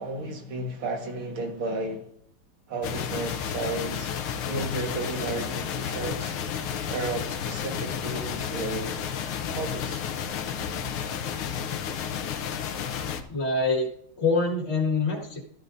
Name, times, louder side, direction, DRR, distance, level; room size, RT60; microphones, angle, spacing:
voice 1, 0.0-2.1 2.7-4.1 4.4-6.3 6.9-8.9 9.5-10.0, right 2 dB, 80° right, 2.5 m, -33 dB
sound 1, 2.8-13.2, left 8 dB, 85° left, 1.7 m, -32 dB
voice 2, 13.3-13.9 14.2-15.4, left 3 dB, 30° left, 2.0 m, -25 dB
13.5 x 12.0 x 2.7 m
omnidirectional pair, 2.3 m